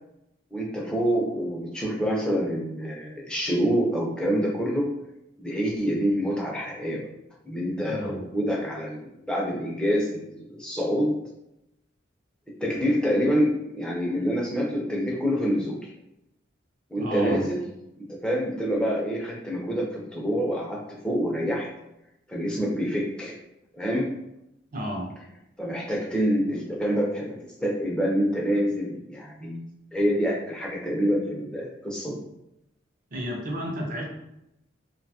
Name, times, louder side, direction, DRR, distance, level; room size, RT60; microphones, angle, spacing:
voice 1, 0.5-5.0 5.4-7.0 7.4-11.2 12.6-15.8 16.9-17.6 18.0-21.7 22.3-23.4 23.7-24.1 25.6-32.2, equal, 5° left, -3 dB, 0.4 m, -26 dB
voice 2, 7.9-8.3 16.9-17.4 24.7-25.1 33.1-34.0, equal, 45° right, 0 dB, 0.6 m, -32 dB
2.6 x 2.3 x 2.7 m, 0.86 s
head